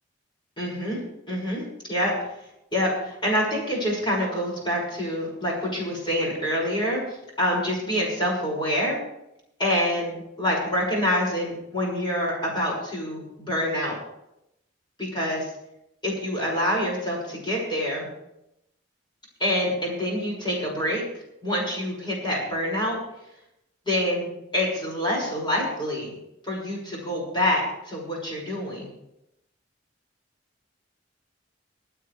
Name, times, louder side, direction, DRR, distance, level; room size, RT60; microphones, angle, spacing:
voice 1, 0.6-1.0 1.3-2.1 2.7-7.0 7.4-9.0 9.6-14.0 15.0-15.5 16.0-18.1 19.4-21.0 21.4-23.0 23.8-26.1 26.4-28.9, equal, 25° left, -3 dB, 6.2 m, -26 dB
24.5 x 9.0 x 3.4 m, 0.82 s
head